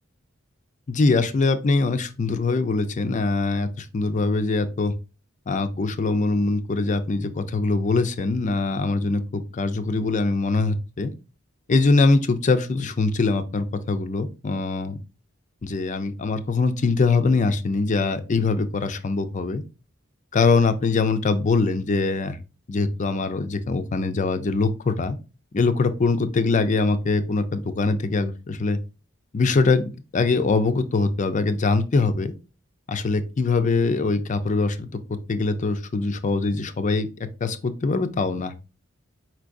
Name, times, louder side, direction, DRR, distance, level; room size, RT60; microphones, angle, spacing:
voice 1, 0.9-4.9 5.5-11.1 11.7-15.0 15.6-19.6 20.3-22.4 22.7-25.2 25.5-28.8 29.3-32.3 32.9-34.9 35.3-38.5, left 3 dB, 40° left, 10 dB, 0.5 m, -23 dB
4.6 x 4.5 x 2.5 m, 0.30 s
head